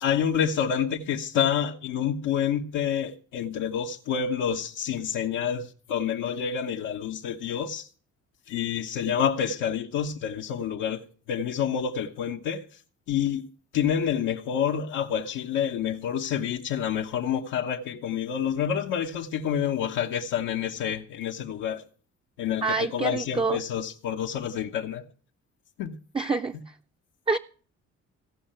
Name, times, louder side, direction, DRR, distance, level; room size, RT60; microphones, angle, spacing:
voice 1, 0.0-7.9 8.5-11.0 11.3-12.6 13.1-13.5 13.7-21.8 22.4-25.0 25.8-26.0, left 8 dB, 90° left, 1.2 m, -28 dB
voice 2, 22.6-23.6 26.1-26.6 27.3-27.4, right 4 dB, 15° right, 0.6 m, -26 dB
16.5 x 5.7 x 8.8 m
cardioid pair, 90°, 30 cm